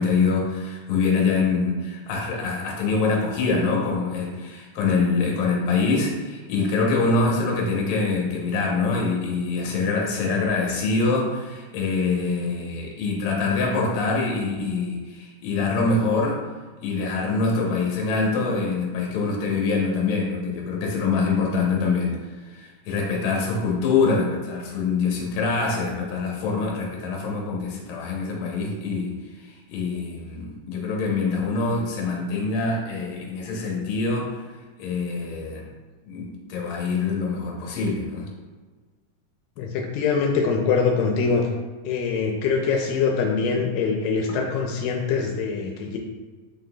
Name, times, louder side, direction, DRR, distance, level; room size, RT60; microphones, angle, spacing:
voice 1, 0.0-16.4 16.8-22.1 22.5-29.1 29.4-34.4 34.8-35.6 36.0-38.3 44.3-44.4, left 4 dB, 70° left, -2 dB, 1.9 m, -24 dB
voice 2, 39.6-41.4 41.8-46.0, left 5 dB, 85° left, 1 dB, 2.1 m, -23 dB
5.0 x 3.8 x 2.3 m, 1.4 s
omnidirectional pair, 3.8 m